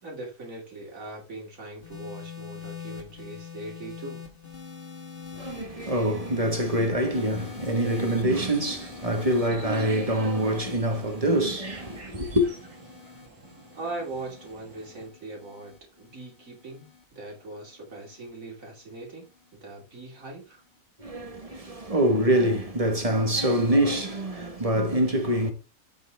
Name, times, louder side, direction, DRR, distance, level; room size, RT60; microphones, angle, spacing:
voice 1, 0.0-4.2 13.7-19.3 19.5-20.6, right 2 dB, 65° right, 3.0 m, -40 dB
sound 1, 1.8-18.3 19.2-19.6, left 7 dB, 40° left, 2.1 m, -45 dB
voice 2, 5.3-12.5 21.0-25.5, right 1 dB, 25° right, 1.4 m, -25 dB
sound 2, 7.3-15.1, right 3 dB, 90° right, 3.0 m, -49 dB
8.1 x 6.7 x 3.4 m
omnidirectional pair, 1.5 m